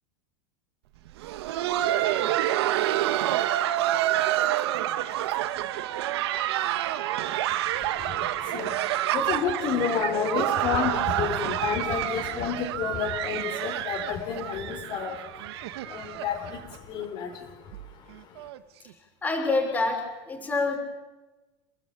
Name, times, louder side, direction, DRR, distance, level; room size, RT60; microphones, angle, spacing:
Laughter, 1.1-16.8 17.0-17.1 17.7-17.8 18.4-18.6 19.6-19.7, right 13 dB, 75° right, 2.2 m, -28 dB
voice 1, 7.2-18.5, left 7 dB, 35° left, 2 dB, 5.1 m, -31 dB
voice 2, 19.2-20.8, left 3 dB, 10° left, 2 dB, 6.1 m, -26 dB
29.5 x 19.5 x 8.9 m, 1.1 s
supercardioid pair, 160°, 14 cm